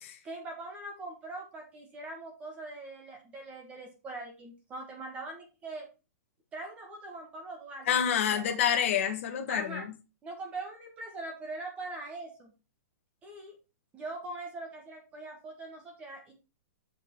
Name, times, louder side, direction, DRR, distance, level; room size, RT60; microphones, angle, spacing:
voice 1, 0.2-5.9 6.5-8.4 9.5-9.9 10.2-12.5 13.2-13.5 13.9-16.3, right 2 dB, 15° right, 1.4 m, -42 dB
voice 2, 7.9-9.8, left 9 dB, 45° left, 1.6 m, -28 dB
7.1 x 5.7 x 4.5 m
hypercardioid pair, 165°, 9 cm